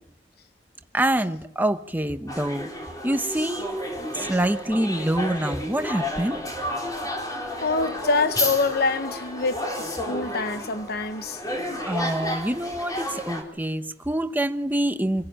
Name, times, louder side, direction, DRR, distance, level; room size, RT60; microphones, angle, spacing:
voice 1, 0.9-2.7 3.0-6.4 11.9-15.3, right 1 dB, 10° right, 1.0 m, -26 dB
sound 1, 2.3-13.4, left 1 dB, 20° left, 4.4 m, -31 dB
voice 2, 7.6-11.4, left 4 dB, 60° left, 0.9 m, -25 dB
26.5 x 16.5 x 8.9 m
head